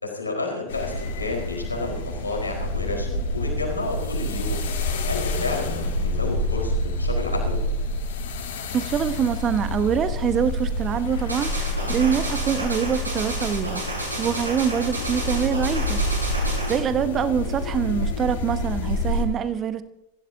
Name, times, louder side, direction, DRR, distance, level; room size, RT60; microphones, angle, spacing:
voice 1, 0.0-4.6 5.1-7.6 12.1-12.3 14.1-14.3 16.3-16.6, left 3 dB, 80° left, 4.4 m, -31 dB
sound 1, 0.7-19.3, left 1 dB, 60° left, 3.4 m, -28 dB
voice 2, 8.7-16.0 16.7-19.8, right 8 dB, 25° right, 1.0 m, -25 dB
sound 2, 11.3-16.8, right 1 dB, 80° right, 5.9 m, -31 dB
26.5 x 16.0 x 2.8 m
figure-of-eight pair, 90°, 0 cm